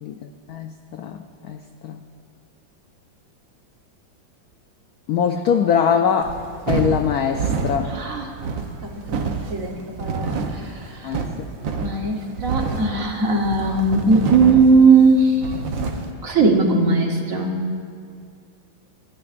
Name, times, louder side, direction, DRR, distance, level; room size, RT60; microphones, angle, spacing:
voice 1, 0.0-2.0 5.1-6.4 6.7-8.0 11.0-11.5, left 7 dB, 80° left, 6 dB, 0.8 m, -23 dB
sound 1, 6.2-16.1, right 4 dB, 70° right, 1.7 m, -28 dB
voice 2, 7.8-8.3 8.8-11.1 11.8-15.5 16.2-17.5, right 3 dB, 45° right, 1 dB, 1.4 m, -19 dB
25.0 x 12.5 x 2.5 m, 2.3 s
omnidirectional pair, 2.2 m